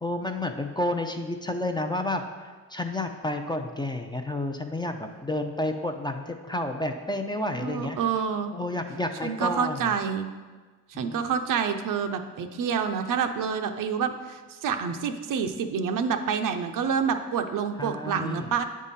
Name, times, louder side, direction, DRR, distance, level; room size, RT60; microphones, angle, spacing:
voice 1, 0.0-8.0 8.5-9.8 10.9-11.2 17.8-18.5, left 1 dB, 15° left, 5 dB, 0.5 m, -30 dB
voice 2, 7.6-8.5 9.2-10.3 10.9-18.6, right 6 dB, 65° right, 7 dB, 0.6 m, -28 dB
8.0 x 3.6 x 4.1 m, 1.4 s
cardioid pair, 70°, 35 cm